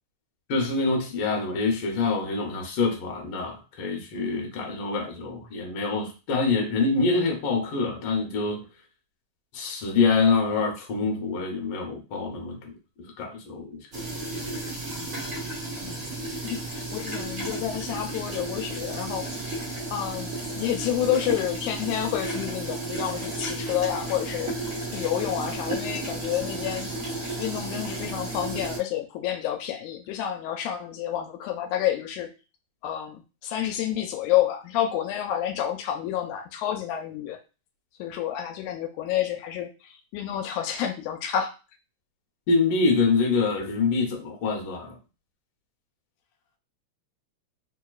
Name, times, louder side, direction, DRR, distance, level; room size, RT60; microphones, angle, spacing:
voice 1, 0.5-8.6 9.5-12.7 13.2-13.8 42.5-45.0, left 4 dB, 65° left, 1 dB, 1.6 m, -25 dB
sound 1, 13.9-28.8, right 2 dB, 80° right, 0.7 m, -33 dB
voice 2, 16.4-19.3 19.9-24.5 24.9-26.9 27.4-32.3 32.8-37.4 38.0-41.5, left 11 dB, 85° left, 6 dB, 1.9 m, -29 dB
4.4 x 2.8 x 2.3 m, 0.32 s
omnidirectional pair, 3.3 m